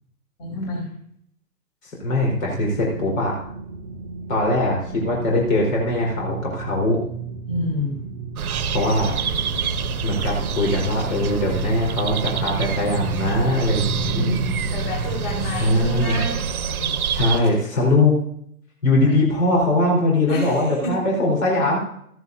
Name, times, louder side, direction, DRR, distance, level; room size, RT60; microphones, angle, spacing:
voice 1, 0.4-0.9 7.5-8.0 14.1-17.0 17.4-17.5 19.0-19.1 20.3-21.0, left 1 dB, 40° left, -2 dB, 4.8 m, -29 dB
voice 2, 1.8-3.4 4.3-7.0 8.7-9.1 10.0-14.4 15.4-16.2 17.1-18.2 18.8-21.8, left 2 dB, 60° left, -2 dB, 4.3 m, -21 dB
sound 1, 2.5-15.6, right 3 dB, 15° right, 0.3 m, -32 dB
sound 2, 8.4-17.4, right 7 dB, 70° right, 1.0 m, -27 dB
14.0 x 11.0 x 2.7 m, 0.68 s
hypercardioid pair, 135°, 45 cm